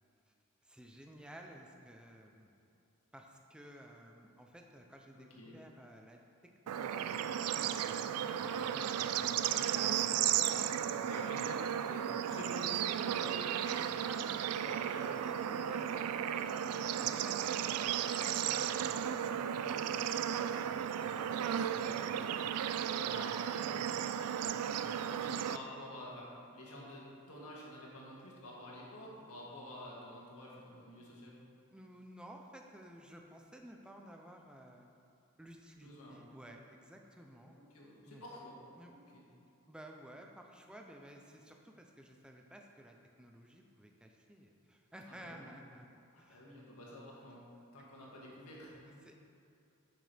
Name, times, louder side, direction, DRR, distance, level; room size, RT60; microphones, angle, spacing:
voice 1, 0.6-2.6 3.1-5.3 5.5-6.2 6.6-7.3 7.8-11.5 13.3-14.7 15.2-22.1 22.5-22.7 23.0-23.4 23.7-25.2 31.7-34.9 35.4-37.5 38.1-38.2 38.7-39.0 39.7-46.5 49.0-49.2, right 1 dB, 5° right, 2 dB, 0.5 m, -55 dB
voice 2, 5.1-5.5 11.0-13.3 14.6-15.2 21.7-22.2 23.1-23.7 25.1-31.4 35.8-36.2 37.6-38.6 39.1-39.2 45.0-45.6 46.1-47.4 47.7-49.0, left 1 dB, 85° left, -4 dB, 1.9 m, -50 dB
Bird / Insect / Frog, 6.7-25.6, right 9 dB, 90° right, 0.3 m, -34 dB
10.0 x 6.5 x 3.4 m, 2.7 s
head